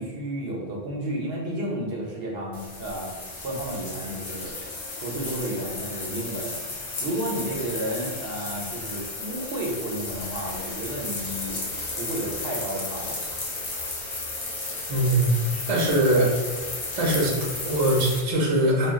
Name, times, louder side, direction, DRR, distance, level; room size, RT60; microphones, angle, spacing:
voice 1, 0.0-4.5 5.0-6.5 7.0-11.6 12.0-13.2 16.1-16.3, right 1 dB, 70° right, -2 dB, 0.8 m, -32 dB
sound 1, 2.5-18.2, left 2 dB, 45° left, 0.4 m, -34 dB
voice 2, 14.9-15.3 15.7-16.3 17.0-18.9, right 1 dB, 40° right, -4 dB, 0.6 m, -22 dB
2.2 x 2.2 x 3.5 m, 1.3 s
omnidirectional pair, 1.1 m